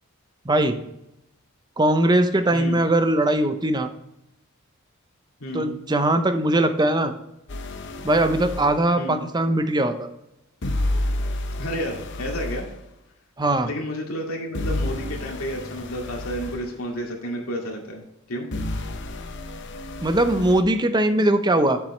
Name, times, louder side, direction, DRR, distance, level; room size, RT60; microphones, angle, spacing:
voice 1, 0.4-0.8 1.8-3.9 5.5-7.1 8.0-10.1 13.4-13.7 20.0-21.8, right 1 dB, 20° right, 8 dB, 0.6 m, -20 dB
voice 2, 5.4-5.7 9.0-9.2 11.6-12.7 13.6-18.5, equal, 85° left, 0 dB, 2.2 m, -31 dB
sound 1, 7.5-8.8 10.6-12.7 14.5-16.7 18.5-20.6, left 1 dB, 55° left, 0.8 m, -30 dB
8.0 x 7.1 x 3.2 m, 0.86 s
head